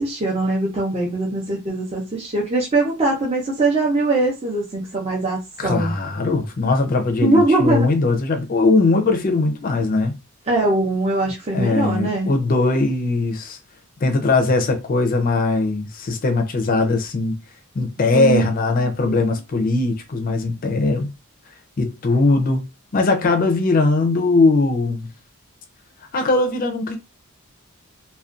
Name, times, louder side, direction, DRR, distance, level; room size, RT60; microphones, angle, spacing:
voice 1, 0.0-5.9 7.2-7.9 10.5-12.3 18.1-18.5 18.8-19.3, right 2 dB, 25° right, 0.5 m, -21 dB
voice 2, 5.6-10.2 11.5-13.6 14.0-17.4 17.8-21.1 21.8-22.7 22.9-25.1 26.1-27.0, left 3 dB, 40° left, 0.4 m, -20 dB
2.4 x 2.2 x 2.4 m
head